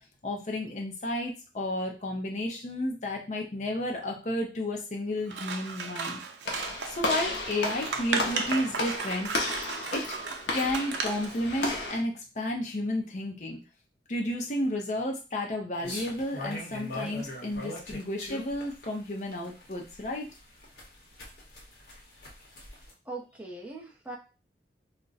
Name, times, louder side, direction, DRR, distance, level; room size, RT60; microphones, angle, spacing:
voice 1, 0.2-6.2 6.6-9.3 9.9-10.1 10.5-13.6 14.1-20.3, left 1 dB, 40° left, 1 dB, 0.6 m, -32 dB
Scissors, 5.3-11.4, right 5 dB, 80° right, 0.5 m, -35 dB
Walk footsteps / Slam, 6.4-12.0, left 2 dB, 85° left, 0.8 m, -33 dB
sound 1, 15.8-22.9, left 1 dB, 60° left, 1.0 m, -41 dB
voice 2, 23.1-24.2, right 2 dB, 10° right, -2 dB, 0.6 m, -40 dB
2.5 x 2.1 x 3.9 m, 0.31 s
head